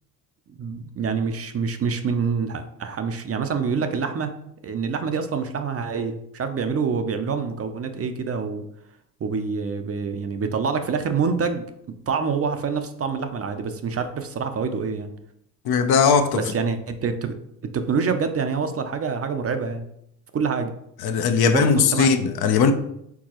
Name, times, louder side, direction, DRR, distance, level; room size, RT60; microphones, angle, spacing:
voice 1, 0.5-4.3 4.6-8.6 9.2-11.6 12.1-15.1 16.3-17.4 17.7-19.9 20.3-20.7 21.4-22.1, right 5 dB, 35° right, 0.5 m, -26 dB
voice 2, 15.6-16.4 21.0-22.7, left 6 dB, 65° left, 0.6 m, -19 dB
4.6 x 3.8 x 2.9 m
cardioid pair, 80°, 41 cm